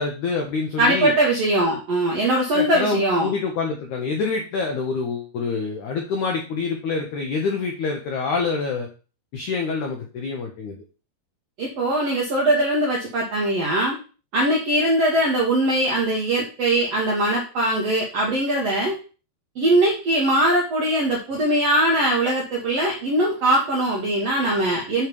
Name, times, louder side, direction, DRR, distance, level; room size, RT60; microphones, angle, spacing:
voice 1, 0.0-1.1 2.5-8.9 9.3-10.8, left 4 dB, 80° left, 2 dB, 1.7 m, -26 dB
voice 2, 0.8-3.3 11.6-14.0 14.3-19.0 19.6-25.1, right 1 dB, 70° right, -2 dB, 1.5 m, -21 dB
8.8 x 3.2 x 5.2 m, 0.35 s
omnidirectional pair, 4.7 m